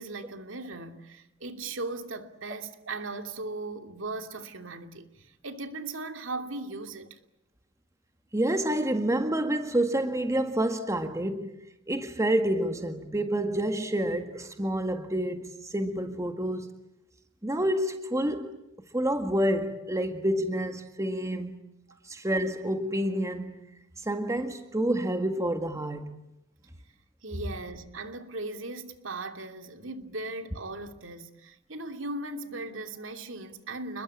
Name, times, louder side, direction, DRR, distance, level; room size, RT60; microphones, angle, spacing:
voice 1, 0.0-7.2 27.2-34.0, right 2 dB, 70° right, 2.8 m, -38 dB
voice 2, 8.3-11.6 11.9-16.7 17.4-18.6 18.9-21.6 22.1-23.5 24.0-26.2, right 1 dB, 15° right, 1.8 m, -28 dB
29.5 x 22.0 x 8.6 m
head